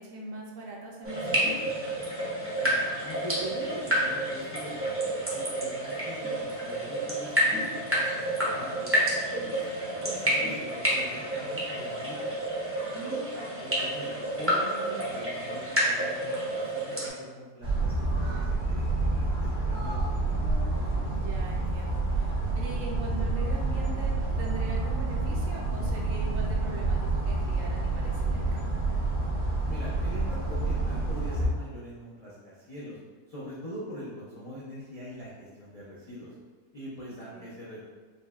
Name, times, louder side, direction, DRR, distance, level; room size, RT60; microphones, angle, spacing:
voice 1, 0.0-1.6 12.9-13.8 20.9-28.7 37.3-37.5, right 2 dB, 70° right, -2 dB, 0.8 m, -41 dB
sound 1, 1.0-17.1, right 1 dB, 20° right, 0.3 m, -29 dB
voice 2, 2.6-9.0 9.3-12.4 13.6-20.0 29.6-33.0 33.3-36.3 36.7-37.8, equal, 70° left, -9 dB, 0.3 m, -43 dB
sound 2, 17.6-31.5, right 2 dB, 90° right, 1.7 m, -28 dB
5.3 x 2.2 x 2.3 m, 1.4 s
omnidirectional pair, 1.6 m